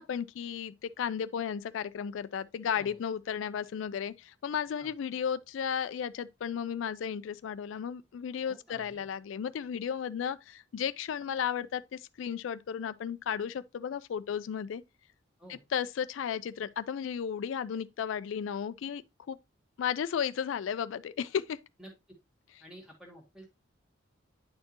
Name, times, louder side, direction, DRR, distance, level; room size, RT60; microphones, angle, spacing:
voice 1, 0.0-14.8 15.7-19.0 19.3-19.4 19.8-21.6, left 8 dB, 75° left, 0.3 m, -34 dB
voice 2, 8.5-9.1 15.4-15.6 21.8-21.9 22.6-23.5, right 1 dB, ahead, 1.2 m, -51 dB
9.4 x 4.3 x 2.9 m
head